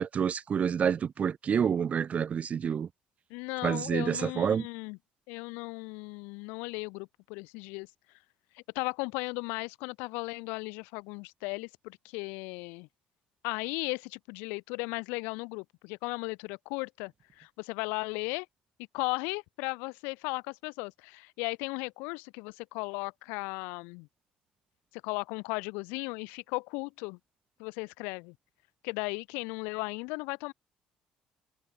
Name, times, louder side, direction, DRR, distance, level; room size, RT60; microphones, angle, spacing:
voice 1, 0.0-2.9 3.6-4.7, right 7 dB, 45° right, 0.4 m, -28 dB
voice 2, 3.3-5.0 5.3-7.9 8.5-12.9 13.4-18.5 18.9-24.1 25.0-27.2 27.6-28.3 28.8-30.5, left 30 dB, 80° left, 2.9 m, -36 dB
hypercardioid pair, 50°, 3 cm